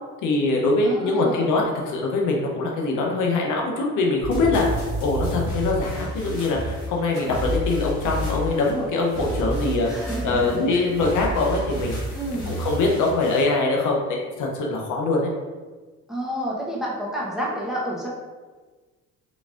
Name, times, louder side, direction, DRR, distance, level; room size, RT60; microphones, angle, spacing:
voice 1, 0.2-4.7 5.0-12.0 12.4-15.3, left 3 dB, 85° left, 0 dB, 0.7 m, -23 dB
voice 2, 0.8-1.4 9.9-10.9 12.1-12.5 16.1-18.1, equal, ahead, -5 dB, 1.0 m, -30 dB
sound 1, 4.2-13.4, right 1 dB, 60° left, 1.4 m, -30 dB
3.9 x 3.5 x 2.4 m, 1.3 s
cardioid pair, 90°, 30 cm